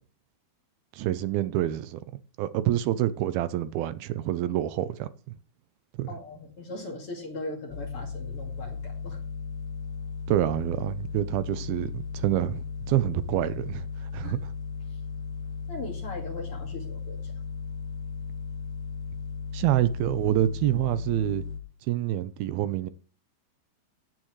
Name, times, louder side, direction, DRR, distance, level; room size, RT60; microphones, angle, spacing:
voice 1, 0.9-2.0 2.4-5.1 6.0-6.1 10.3-13.9 14.1-14.5 19.5-21.4 21.9-22.9, right 13 dB, 80° right, 2.6 m, -27 dB
voice 2, 6.1-9.2 14.2-14.3 14.9-15.0 15.7-17.3, left 2 dB, 45° left, 2.6 m, -39 dB
sound 1, 7.7-21.6, left 5 dB, 75° left, 2.8 m, -36 dB
15.0 x 10.0 x 3.2 m
omnidirectional pair, 4.4 m